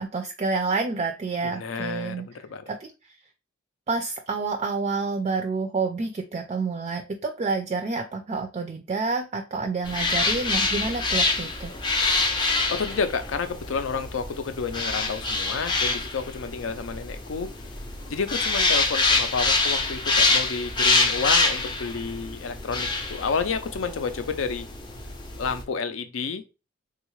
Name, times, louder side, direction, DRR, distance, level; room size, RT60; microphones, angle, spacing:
voice 1, 0.0-2.3 2.7-2.9 3.9-11.7, right 4 dB, 35° right, 0.3 m, -28 dB
voice 2, 1.4-2.8 12.7-17.5 18.1-24.7 25.4-26.4, left 5 dB, 80° left, 0.5 m, -30 dB
sound 1, 9.8-25.6, left 3 dB, 25° left, 0.5 m, -26 dB
3.5 x 2.3 x 3.0 m
head